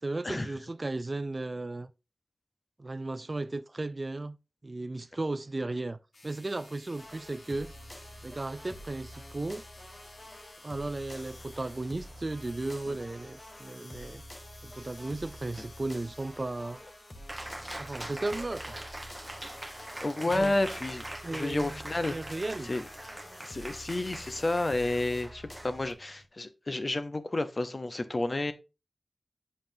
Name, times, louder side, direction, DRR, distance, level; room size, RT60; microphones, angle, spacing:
voice 1, 0.0-1.9 2.8-4.4 4.6-7.7 8.2-9.6 10.6-14.2 14.6-16.8 17.8-18.8 20.2-20.5 21.2-21.8 22.1-22.7, right 2 dB, 40° right, 0.4 m, -35 dB
sound 1, 6.1-25.2, left 2 dB, 65° left, 1.4 m, -54 dB
sound 2, 7.0-25.9, equal, 25° left, 1.1 m, -48 dB
Cheering, 17.3-26.2, right 1 dB, 20° right, 1.1 m, -43 dB
voice 2, 20.0-21.0 21.3-22.1 22.6-22.8 23.4-28.5, left 2 dB, 40° left, 0.8 m, -31 dB
7.7 x 5.4 x 2.7 m
wide cardioid pair, 85°, 0 cm